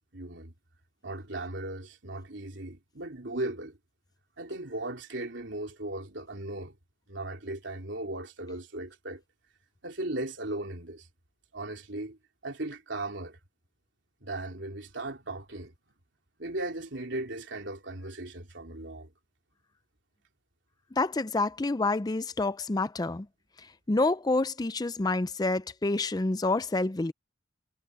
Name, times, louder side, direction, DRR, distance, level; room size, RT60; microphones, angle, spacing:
voice 1, 0.1-0.5 1.0-3.8 4.4-6.8 7.1-9.2 9.8-11.1 11.5-12.2 12.4-13.4 14.2-15.7 16.4-19.1, right 2 dB, 65° right, 3.4 m, -37 dB
voice 2, 20.9-23.3 23.9-27.1, left 2 dB, 20° left, 0.5 m, -28 dB
head